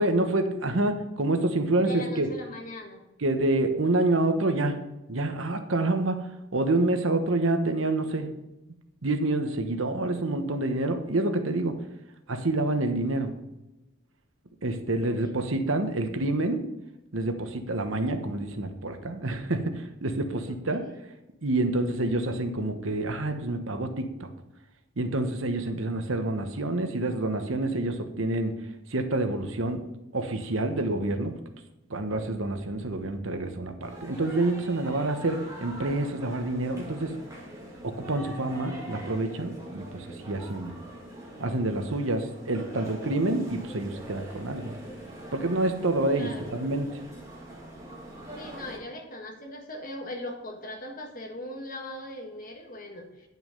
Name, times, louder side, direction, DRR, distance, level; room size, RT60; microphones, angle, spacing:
voice 1, 0.0-2.3 3.2-4.8 5.1-8.3 9.0-11.7 12.3-13.3 14.6-16.6 17.1-20.8 21.4-24.3 25.0-28.6 28.9-29.8 30.1-31.3 31.9-37.1 37.8-40.7 41.4-44.7 45.3-47.0, right 2 dB, 85° right, 7 dB, 1.1 m, -27 dB
voice 2, 1.8-3.0 15.0-15.5 20.4-20.9 46.1-46.9 48.4-53.3, left 1 dB, 45° left, 2 dB, 1.6 m, -40 dB
sound 1, 33.8-48.8, right 1 dB, 15° right, 2.2 m, -43 dB
9.5 x 5.9 x 5.2 m, 0.95 s
head